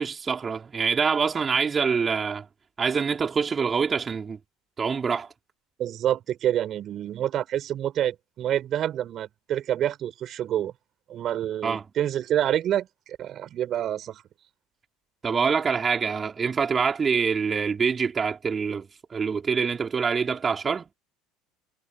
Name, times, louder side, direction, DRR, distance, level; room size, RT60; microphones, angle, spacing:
voice 1, 0.0-2.5 2.8-4.4 4.8-5.3 11.6-11.8 15.2-20.9, right 5 dB, 30° right, 4.5 m, -25 dB
voice 2, 5.8-10.7 11.1-14.2, right 11 dB, 45° right, 4.5 m, -27 dB
figure-of-eight pair, 65°, 0 cm